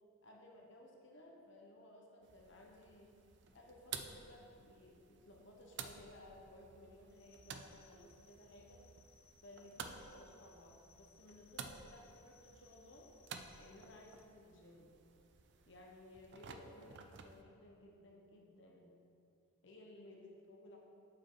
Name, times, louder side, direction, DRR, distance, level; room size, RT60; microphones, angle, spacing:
voice 1, 0.2-3.1 3.5-8.8 9.4-13.1 13.5-15.0 15.7-19.0 19.6-20.8, left 1 dB, 55° left, -1 dB, 0.8 m, -58 dB
sound 1, 2.2-17.4, right 6 dB, 55° right, 0.4 m, -53 dB
sound 2, 7.1-14.2, left 7 dB, 85° left, 0.6 m, -69 dB
7.2 x 5.1 x 4.5 m, 2.7 s
head